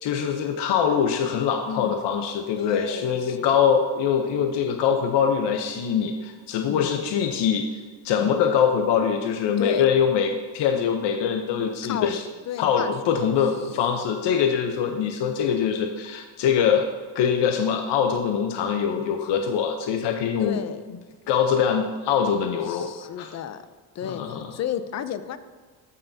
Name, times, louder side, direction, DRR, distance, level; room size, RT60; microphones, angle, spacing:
voice 1, 0.0-7.7 8.0-12.2 12.6-16.9 17.1-20.6 21.3-23.3 24.0-24.5, left 7 dB, 60° left, 4 dB, 0.8 m, -23 dB
voice 2, 1.7-2.0 2.6-3.6 6.7-7.1 8.2-8.4 9.6-9.9 11.8-12.2 12.5-13.2 15.0-15.1 18.9-19.2 20.4-20.8 22.7-23.6 24.0-25.4, left 9 dB, 40° left, 12 dB, 0.4 m, -32 dB
14.0 x 5.6 x 2.7 m, 1.5 s
cardioid pair, 135°, 47 cm